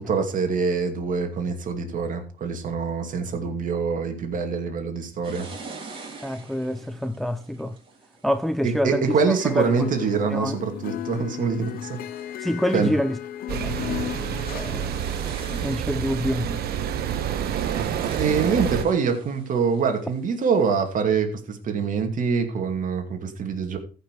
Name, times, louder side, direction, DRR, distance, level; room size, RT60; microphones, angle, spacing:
voice 1, 0.0-5.5 8.6-12.0 12.7-12.9 18.2-23.8, right 5 dB, 50° right, 2.4 m, -25 dB
sound 1, 5.2-10.0 10.6-11.1 11.5-20.8, right 3 dB, 30° right, 5.0 m, -45 dB
voice 2, 6.2-7.8 8.2-9.9 10.3-10.6 12.4-13.2 13.5-14.9 15.5-16.6, equal, ahead, 0.6 m, -27 dB
sound 2, 9.4-14.9, left 11 dB, 60° left, 0.6 m, -35 dB
sound 3, 13.5-18.8, right 9 dB, 65° right, 1.2 m, -28 dB
14.0 x 5.8 x 4.8 m
cardioid pair, 110°, 17 cm